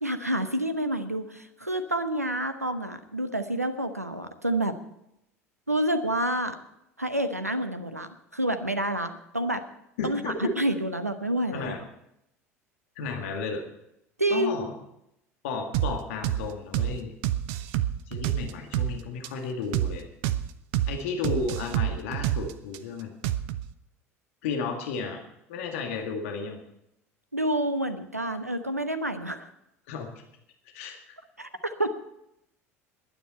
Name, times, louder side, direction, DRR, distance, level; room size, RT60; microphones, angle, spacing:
voice 1, 0.0-4.8 5.7-6.6 7.0-9.6 10.0-11.7 14.2-14.7 27.3-29.5 31.4-31.9, right 1 dB, 90° right, 10 dB, 1.0 m, -28 dB
voice 2, 10.0-10.5 11.5-11.8 13.0-13.6 14.3-14.7 15.4-17.1 18.1-20.1 20.9-23.1 24.4-25.2 25.5-26.6 29.9-30.1 30.7-31.0, left 4 dB, 60° left, 3 dB, 2.1 m, -33 dB
sound 1, 15.7-15.9 16.2-16.4 16.7-16.9 17.2-18.9 19.2-19.3 19.7-19.9 20.2-20.4 20.7-20.9 21.2-22.8 23.2-23.7, right 12 dB, 55° right, 0.7 m, -27 dB
21.5 x 9.8 x 4.4 m, 0.81 s
figure-of-eight pair, 70°, 8 cm